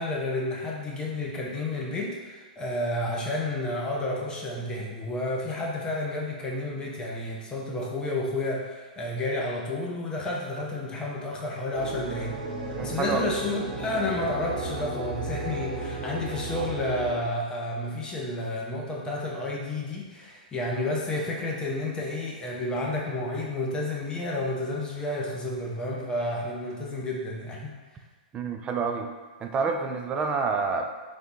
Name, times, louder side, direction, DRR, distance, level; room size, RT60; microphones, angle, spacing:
voice 1, 0.0-12.3 12.7-27.7, left 2 dB, 15° left, -2 dB, 0.7 m, -31 dB
sound 1, 11.7-17.1, right 3 dB, 60° right, 1.0 m, -34 dB
voice 2, 12.7-13.3 28.3-29.1 29.4-30.9, right 5 dB, 20° right, 4 dB, 0.4 m, -28 dB
3.2 x 2.6 x 4.3 m, 1.3 s
hypercardioid pair, 120°, 5 cm